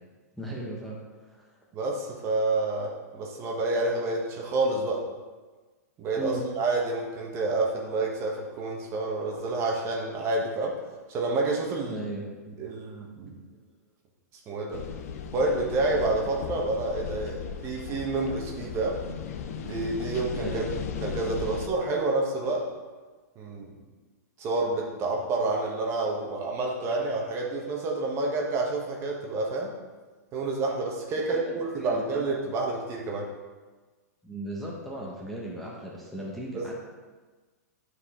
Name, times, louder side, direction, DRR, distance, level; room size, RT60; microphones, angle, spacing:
voice 1, 0.4-1.5 6.1-6.5 11.9-12.3 13.5-13.6 20.4-20.7 21.4-21.5 31.2-32.2 34.2-36.7, right 1 dB, ahead, -4 dB, 1.3 m, -37 dB
voice 2, 1.7-5.0 6.0-10.7 11.1-12.0 12.6-13.4 14.5-14.8 15.3-19.0 19.6-20.6 21.0-22.6 23.4-23.7 24.4-29.7 30.3-33.2 36.5-36.6, right 2 dB, 30° right, -1 dB, 1.3 m, -28 dB
sound 1, 14.7-21.7, left 7 dB, 60° left, 0.7 m, -36 dB
9.4 x 4.9 x 3.7 m, 1.3 s
hypercardioid pair, 125°, 9 cm